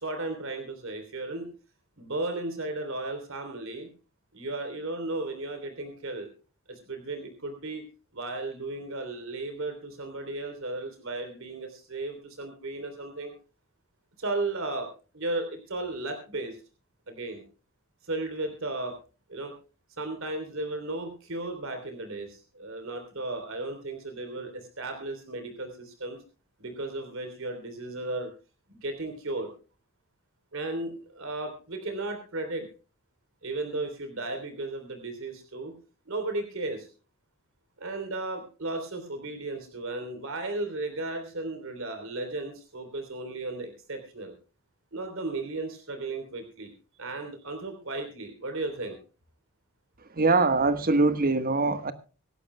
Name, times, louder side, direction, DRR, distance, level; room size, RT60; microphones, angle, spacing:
voice 1, 0.0-1.5 2.0-3.9 4.3-6.3 6.7-7.8 8.1-13.3 14.2-14.9 15.1-16.6 17.1-17.4 18.0-19.0 19.3-19.5 20.0-26.2 26.6-28.3 28.7-29.5 30.5-32.7 33.4-35.7 36.0-36.9 37.8-44.3 44.9-46.7 47.0-49.0, right 2 dB, 65° right, 6 dB, 3.4 m, -35 dB
voice 2, 50.2-51.9, right 3 dB, 45° right, 11 dB, 1.3 m, -23 dB
25.5 x 11.5 x 2.2 m, 0.36 s
head